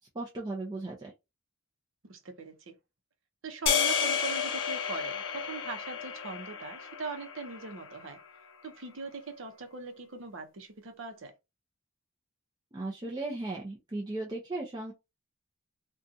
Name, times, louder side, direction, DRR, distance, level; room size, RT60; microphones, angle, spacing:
voice 1, 0.1-1.1 12.7-14.9, right 2 dB, 20° right, 0.5 m, -36 dB
voice 2, 2.1-2.8 3.4-8.2 8.6-11.3, right 3 dB, 65° right, 0.7 m, -41 dB
sound 1, 3.7-8.0, left 7 dB, 60° left, 0.5 m, -31 dB
2.6 x 2.3 x 2.6 m
head